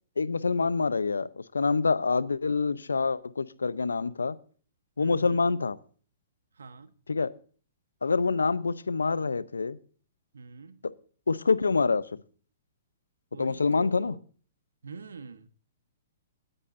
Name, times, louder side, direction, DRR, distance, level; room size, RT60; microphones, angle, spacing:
voice 1, 0.2-4.4 5.0-5.8 7.1-7.3 8.0-9.8 10.8-10.9 11.3-12.2 13.4-14.1, left 4 dB, 90° left, 0.6 m, -26 dB
voice 2, 5.0-5.4 6.5-6.9 10.3-10.8 13.3-14.2 14.8-15.5, right 5 dB, 80° right, 1.2 m, -44 dB
17.0 x 9.8 x 2.6 m
hypercardioid pair, 120°, 0 cm